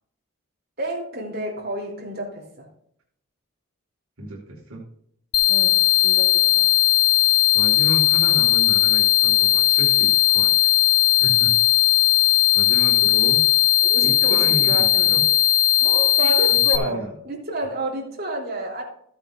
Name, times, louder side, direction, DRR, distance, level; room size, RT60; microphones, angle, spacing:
voice 1, 0.8-2.7 5.5-6.7 13.8-15.2 15.8-18.8, right 1 dB, 45° right, -3 dB, 3.4 m, -30 dB
voice 2, 4.2-4.8 7.5-10.5 11.2-11.5 12.5-13.4 14.0-15.3 16.5-17.1, right 1 dB, 85° right, -1 dB, 2.1 m, -32 dB
sound 1, 5.3-16.8, left 14 dB, 45° left, 0.6 m, -17 dB
14.0 x 8.9 x 2.6 m, 0.71 s
head